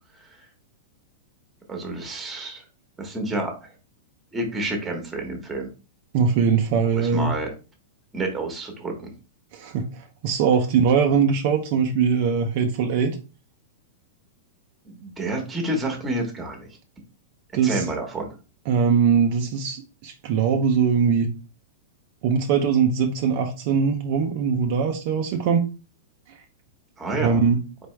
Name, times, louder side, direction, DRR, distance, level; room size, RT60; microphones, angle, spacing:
voice 1, 1.7-2.6 3.0-3.7 4.3-5.7 6.9-7.5 8.1-9.1 14.8-16.8 17.6-18.3 27.0-27.4, right 1 dB, 10° right, 1.2 m, -29 dB
voice 2, 6.1-7.3 9.5-13.2 17.5-17.9 18.7-21.3 22.2-25.7 26.3-26.4 27.2-27.6, right 6 dB, 50° right, 0.6 m, -21 dB
4.3 x 3.4 x 3.2 m
supercardioid pair, 155°, 0 cm